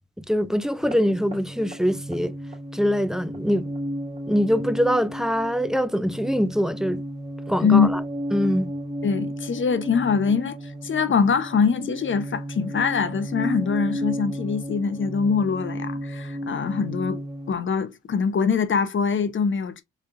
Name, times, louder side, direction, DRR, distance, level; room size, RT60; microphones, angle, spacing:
voice 1, 0.2-2.3 2.7-3.7 4.3-7.0 7.5-8.0 8.3-8.7, equal, ahead, 0.4 m, -23 dB
sound 1, 0.8-17.5, equal, 20° right, 2.5 m, -33 dB
voice 2, 9.0-17.2 17.5-19.8, left 6 dB, 40° left, 0.9 m, -23 dB
4.7 x 3.4 x 2.5 m
cardioid pair, 90°, 30 cm